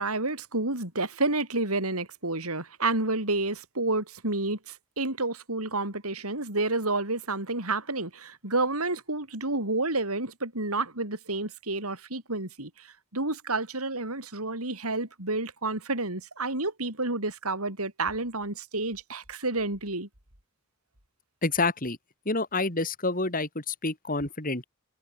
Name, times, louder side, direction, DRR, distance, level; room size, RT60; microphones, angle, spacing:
voice 1, 0.0-20.1, right 2 dB, 85° right, 7.7 m, -30 dB
voice 2, 21.4-22.0 22.3-24.6, left 3 dB, 40° left, 4.3 m, -28 dB
head